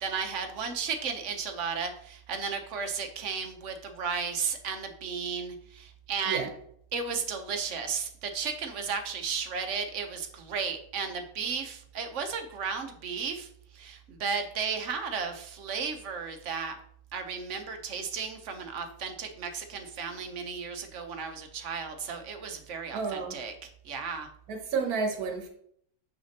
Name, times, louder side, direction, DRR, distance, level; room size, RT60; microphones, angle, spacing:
voice 1, 0.0-6.4 6.9-16.7 17.1-24.3, right 5 dB, 55° right, 1.1 m, -34 dB
voice 2, 22.9-23.4 24.5-25.5, right 5 dB, 80° right, 1.5 m, -31 dB
6.7 x 6.2 x 2.9 m
omnidirectional pair, 1.6 m